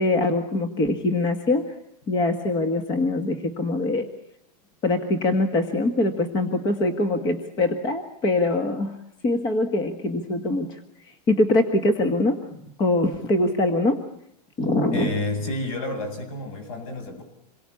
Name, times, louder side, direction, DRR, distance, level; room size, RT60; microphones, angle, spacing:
voice 1, 0.0-1.7 2.1-4.1 4.8-9.0 9.2-10.8 11.0-14.0 14.6-15.1, left 2 dB, 20° left, 7 dB, 1.6 m, -23 dB
voice 2, 14.9-17.2, left 2 dB, 55° left, 8 dB, 7.8 m, -30 dB
28.0 x 23.0 x 8.5 m, 0.74 s
supercardioid pair, 170°, 21 cm